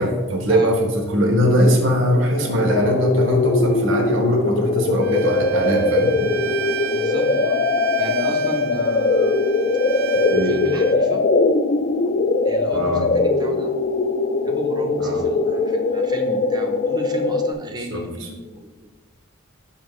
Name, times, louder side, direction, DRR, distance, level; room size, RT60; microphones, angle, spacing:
voice 1, 0.0-6.1 10.3-10.5 12.7-13.0 15.0-15.2 17.9-18.0, equal, 65° right, 2 dB, 1.1 m, -20 dB
sound 1, 2.3-17.5, left 3 dB, 40° left, 0.3 m, -21 dB
Bowed string instrument, 5.0-11.0, right 11 dB, 80° right, 0.5 m, -32 dB
voice 2, 6.9-7.6 8.0-9.4 10.4-11.3 12.0-12.2 12.4-13.7 14.4-18.9, right 1 dB, 20° right, 5 dB, 0.5 m, -33 dB
7.1 x 5.7 x 3.1 m, 1.3 s
head